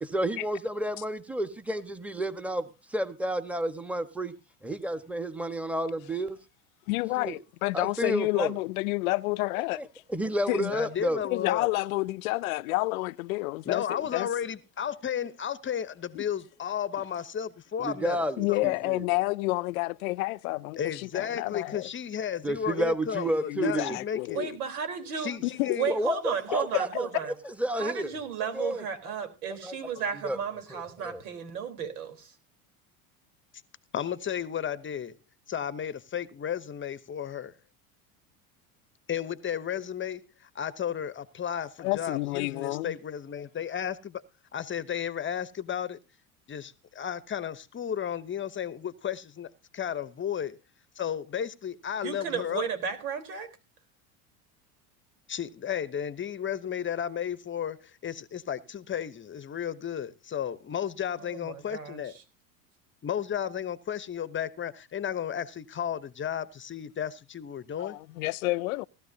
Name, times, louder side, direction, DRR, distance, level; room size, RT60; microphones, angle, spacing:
voice 1, 0.0-4.3 4.6-6.4 7.2-7.4 7.7-8.6 9.7-11.2 17.8-19.0 22.4-24.0 25.9-27.1 27.4-28.1 28.5-28.8 29.6-29.8 30.2-30.4 30.7-31.2, right 1 dB, 5° right, 1.4 m, -31 dB
voice 2, 6.9-9.8 10.5-10.7 11.2-13.8 14.1-14.3 16.2-16.3 18.4-21.9 23.5-24.6 25.4-25.8 26.9-27.0 41.8-43.0 67.8-68.8, left 22 dB, 70° left, 0.6 m, -29 dB
voice 3, 10.7-11.7 13.6-18.2 18.5-18.7 20.8-24.4 25.2-25.9 33.9-35.2 35.5-37.6 39.1-44.2 44.5-46.0 46.5-50.6 51.0-52.7 55.3-62.2 63.0-68.0, left 9 dB, 25° left, 0.9 m, -33 dB
voice 4, 24.3-25.3 25.8-27.3 27.8-32.3 52.0-53.5 61.2-62.0, right 7 dB, 80° right, 4.0 m, -34 dB
18.0 x 13.0 x 2.8 m
hypercardioid pair, 90°, 44 cm